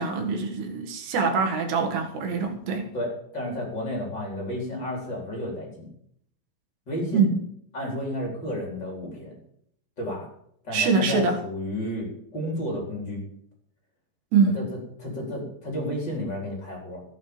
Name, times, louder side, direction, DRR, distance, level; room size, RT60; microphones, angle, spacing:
voice 1, 0.0-2.9 7.1-7.3 10.7-11.4 14.3-14.6, right 4 dB, 75° right, 3 dB, 3.6 m, -24 dB
voice 2, 2.9-5.9 6.9-7.3 7.7-9.4 10.0-10.3 10.6-13.2 14.5-17.0, left 1 dB, 25° left, -1 dB, 4.4 m, -32 dB
16.0 x 8.2 x 7.3 m, 0.69 s
omnidirectional pair, 4.9 m